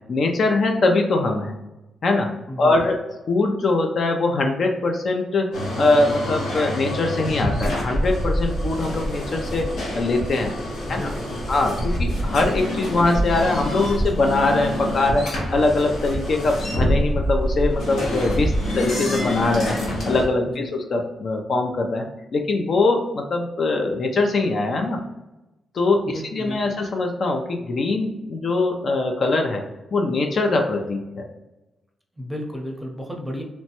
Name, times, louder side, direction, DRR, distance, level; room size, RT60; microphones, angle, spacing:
voice 1, 0.1-1.6 2.0-2.3 2.6-3.0 3.3-10.5 10.9-11.0 11.5-22.0 22.3-25.0 25.7-29.6 29.9-31.2, left 2 dB, 60° left, 3 dB, 0.4 m, -22 dB
voice 2, 2.5-2.9 10.9-11.5 20.5-20.7 26.1-26.8 32.2-33.4, equal, 5° right, 0 dB, 0.7 m, -33 dB
sound 1, 5.5-20.3, equal, 90° left, 1.0 m, -26 dB
3.0 x 2.2 x 2.8 m, 1.0 s
cardioid pair, 70°, 0 cm